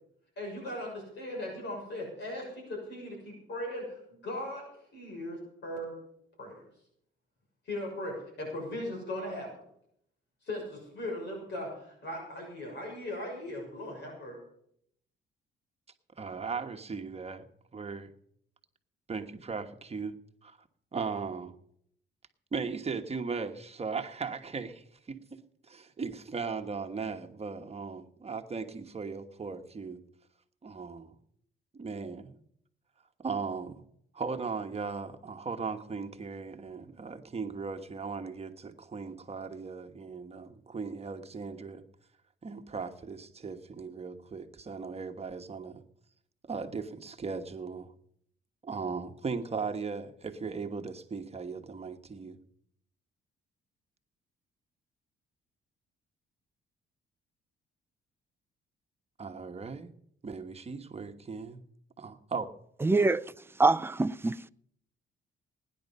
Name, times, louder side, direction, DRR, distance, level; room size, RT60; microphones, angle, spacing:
voice 1, 0.4-3.8 4.1-4.6 4.9-5.9 6.4-6.6 7.7-9.5 10.4-14.4, left 1 dB, 60° left, 6.6 m, -38 dB
voice 2, 16.2-17.4 17.7-18.1 19.1-20.2 20.4-20.6 20.9-21.5 22.5-30.0 30.6-31.2 31.7-32.4 33.2-33.8 34.1-41.8 42.4-45.8 46.4-47.9 48.6-52.4 59.2-59.9 60.2-61.6 62.0-62.5, right 5 dB, 30° right, 1.3 m, -37 dB
voice 3, 62.8-63.3 63.6-64.5, right 3 dB, 10° right, 0.5 m, -25 dB
18.5 x 10.5 x 5.5 m
cardioid pair, 90°, 20 cm